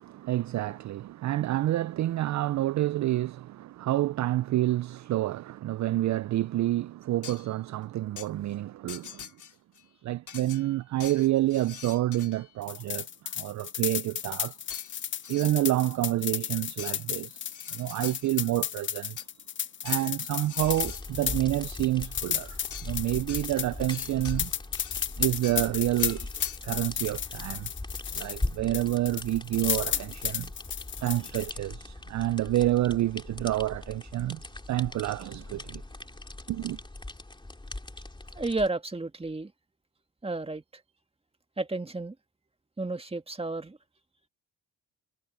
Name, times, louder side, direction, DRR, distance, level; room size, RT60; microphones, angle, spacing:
voice 1, 0.0-9.3 10.0-14.6 15.3-17.4 17.7-19.2 19.8-24.5 25.2-26.3 26.6-27.7 28.1-30.5 31.0-34.4 34.7-35.8 36.5-36.8, right 15 dB, 50° right, 0.5 m, -28 dB
sound 1, 7.2-7.6 8.2-8.3 8.9-9.8 10.3-12.5 14.7-15.5 16.8-17.0 17.5-18.4 18.9-19.4 19.8-21.1 22.7-23.0 23.3-25.0 25.4-25.7 26.0-26.6, left 8 dB, 55° left, 3.0 m, -45 dB
sound 2, 12.6-28.5 28.7-31.5, left 9 dB, 30° left, 0.5 m, -33 dB
sound 3, 20.6-38.7, left 2 dB, 10° left, 2.8 m, -40 dB
voice 2, 38.3-39.5 40.2-40.6 41.6-42.2 42.8-43.8, right 2 dB, 15° right, 2.0 m, -32 dB
supercardioid pair, 70°, 37 cm